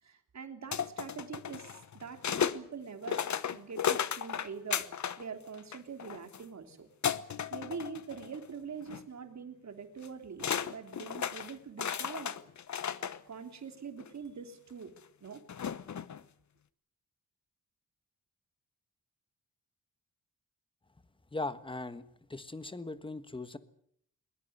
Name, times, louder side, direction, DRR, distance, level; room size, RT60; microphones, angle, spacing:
voice 1, 0.0-4.9 5.2-6.9 7.5-12.3 13.3-14.9 15.2-15.4, right 6 dB, 55° right, 6 dB, 3.2 m, -44 dB
sound 1, 0.7-2.6 3.0-5.2 5.5-6.4 7.0-8.4 8.8-9.0 10.0-10.1 10.4-13.2 14.0-14.1 15.5-16.2, left 8 dB, 55° left, 1.0 m, -34 dB
voice 2, 21.3-22.0 22.3-23.6, left 2 dB, 15° left, 12 dB, 1.4 m, -39 dB
22.0 x 21.5 x 8.0 m, 0.66 s
wide cardioid pair, 145°, 34 cm